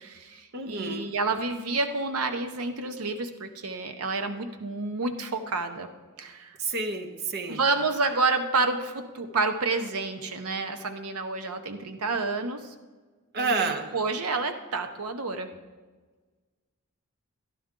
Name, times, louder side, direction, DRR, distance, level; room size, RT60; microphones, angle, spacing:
voice 1, 0.0-5.9 6.2-6.6 7.5-12.7 13.4-15.5, right 3 dB, 75° right, 8 dB, 0.8 m, -29 dB
voice 2, 0.5-1.1 6.6-7.6 13.3-13.9, right 3 dB, 45° right, 7 dB, 0.8 m, -29 dB
13.0 x 11.5 x 3.7 m, 1.3 s
head